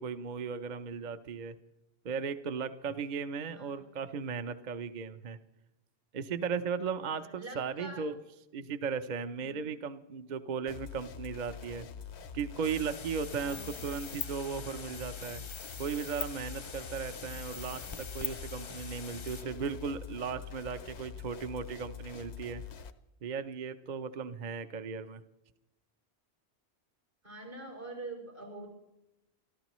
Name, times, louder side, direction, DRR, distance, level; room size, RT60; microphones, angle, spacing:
voice 1, 0.0-1.6 2.0-5.4 6.1-8.2 8.5-11.9 12.3-15.4 15.8-22.6 23.2-25.2, right 6 dB, 50° right, 9 dB, 0.7 m, -36 dB
voice 2, 3.5-4.0 7.1-8.1 9.4-9.6 13.4-13.7 27.2-28.7, right 2 dB, 90° right, -3 dB, 6.1 m, -45 dB
sound 1, 10.7-22.9, left 7 dB, 80° left, 1.1 m, -45 dB
sound 2, 12.6-19.4, left 5 dB, 40° left, 0.4 m, -43 dB
28.0 x 13.5 x 3.1 m, 0.90 s
omnidirectional pair, 1.1 m